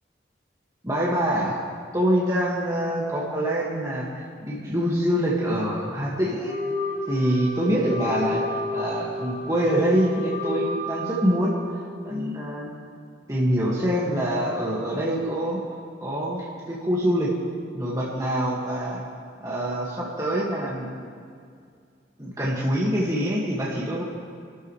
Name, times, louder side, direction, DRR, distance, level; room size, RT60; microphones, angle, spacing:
voice 1, 0.8-1.6 1.9-6.5 7.1-12.7 13.3-15.6 16.0-17.3 17.7-19.0 19.4-20.9 22.2-24.0, equal, 20° right, -6 dB, 2.1 m, -25 dB
Wind instrument woodwind instrument, 6.4-12.1, left 1 dB, 10° left, 3.1 m, -31 dB
27.0 x 13.0 x 3.3 m, 2.2 s
head